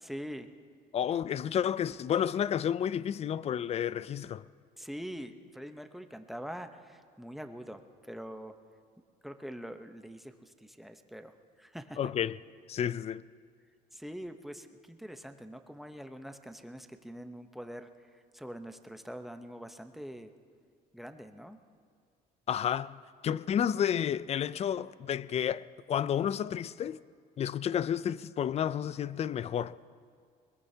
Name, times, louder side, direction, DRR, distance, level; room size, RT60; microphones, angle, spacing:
voice 1, 0.0-0.5 4.8-8.6 9.2-12.1 13.9-20.3 20.9-21.6, equal, ahead, 0.8 m, -44 dB
voice 2, 0.9-4.5 12.0-12.4 12.7-13.2 22.5-27.0 27.4-29.8, left 9 dB, 40° left, 0.4 m, -31 dB
21.5 x 20.5 x 2.8 m
cardioid pair, 110°, 17 cm